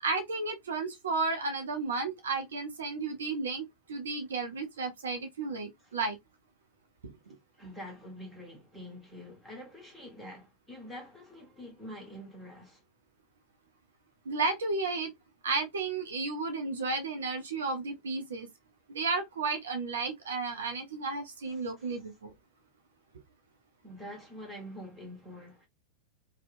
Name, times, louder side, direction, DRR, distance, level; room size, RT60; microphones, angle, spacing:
voice 1, 0.0-6.2 7.0-7.4 14.3-15.1 15.4-18.5 18.9-22.3, right 3 dB, 65° right, 0.5 m, -33 dB
voice 2, 7.5-12.8 21.4-22.0 23.8-25.7, equal, ahead, 1.4 m, -46 dB
2.8 x 2.1 x 2.4 m
figure-of-eight pair, 90°, 0 cm